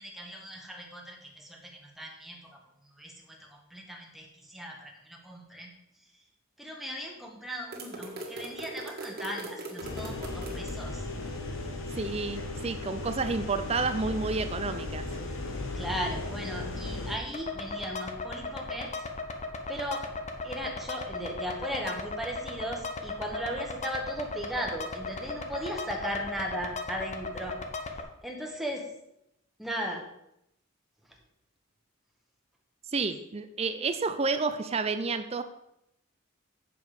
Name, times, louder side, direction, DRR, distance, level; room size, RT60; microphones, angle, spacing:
voice 1, 0.0-1.7 2.0-2.6 3.0-5.7 6.6-11.0 15.7-18.9 19.7-20.0 20.4-27.5 28.2-28.9 29.6-30.0, equal, ahead, 0 dB, 1.4 m, -37 dB
sound 1, 7.7-10.7, right 2 dB, 50° right, 1.8 m, -40 dB
sound 2, 9.8-17.2, left 2 dB, 80° left, 1.4 m, -36 dB
voice 2, 12.0-15.1 32.9-35.4, right 4 dB, 30° right, 10 dB, 0.5 m, -30 dB
sound 3, 17.3-28.0, left 3 dB, 35° left, 0.9 m, -37 dB
8.1 x 6.8 x 5.0 m, 0.79 s
head